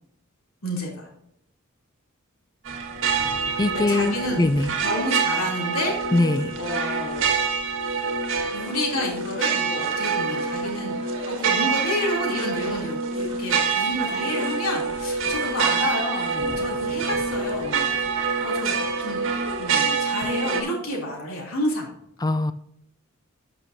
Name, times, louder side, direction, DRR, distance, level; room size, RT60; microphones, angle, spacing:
voice 1, 0.6-1.1 3.7-4.4 4.8-5.9 6.5-7.4 8.5-18.7 19.0-19.2 19.6-21.9, left 1 dB, 85° left, -2 dB, 3.1 m, -30 dB
sound 1, 2.7-20.6, right 5 dB, 65° right, 1.4 m, -26 dB
voice 2, 3.6-4.7 6.1-6.5 22.2-22.5, left 2 dB, 20° left, 11 dB, 0.4 m, -22 dB
12.0 x 6.0 x 2.7 m, 0.76 s
head